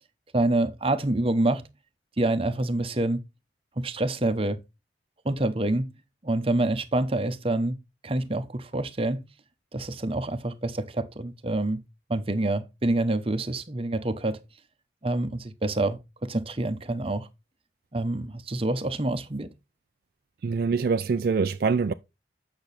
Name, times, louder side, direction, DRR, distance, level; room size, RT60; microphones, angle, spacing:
voice 1, 0.3-1.6 2.2-3.2 3.8-4.6 5.2-5.9 6.2-7.7 8.0-9.2 9.7-11.8 12.1-14.4 15.0-17.3 17.9-19.5, right 2 dB, 30° right, 0.8 m, -27 dB
voice 2, 20.4-21.9, right 5 dB, 55° right, 0.4 m, -24 dB
8.6 x 6.0 x 4.1 m
head